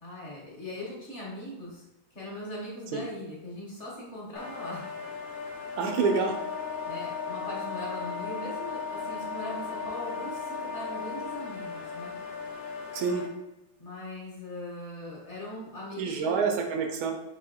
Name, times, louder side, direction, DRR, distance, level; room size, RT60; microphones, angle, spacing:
voice 1, 0.0-1.8 2.1-4.8 6.8-12.1 13.8-16.4, left 1 dB, 45° left, -3 dB, 1.1 m, -40 dB
sound 1, 4.4-13.3, left 5 dB, 85° left, 0.5 m, -39 dB
Wind instrument woodwind instrument, 5.8-11.5, left 5 dB, 15° right, 0.6 m, -37 dB
voice 2, 5.8-6.4 12.9-13.3 16.0-17.1, right 5 dB, 90° right, 4 dB, 1.5 m, -27 dB
4.3 x 2.9 x 3.9 m, 0.93 s
omnidirectional pair, 2.1 m